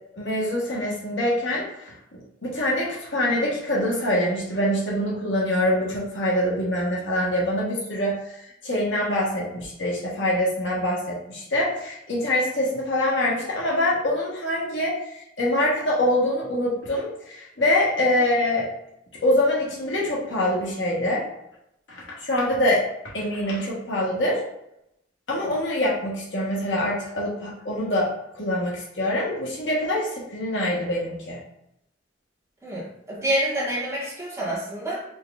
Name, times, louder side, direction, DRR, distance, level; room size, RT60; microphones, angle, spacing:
voice 1, 0.1-1.9 2.4-18.7 19.2-21.2 21.9-22.8 23.1-24.4 25.3-28.1 28.3-31.4, left 1 dB, 80° left, -4 dB, 1.2 m, -24 dB
voice 2, 32.6-35.0, right 1 dB, 15° right, -7 dB, 1.3 m, -27 dB
4.5 x 3.0 x 2.4 m, 0.81 s
head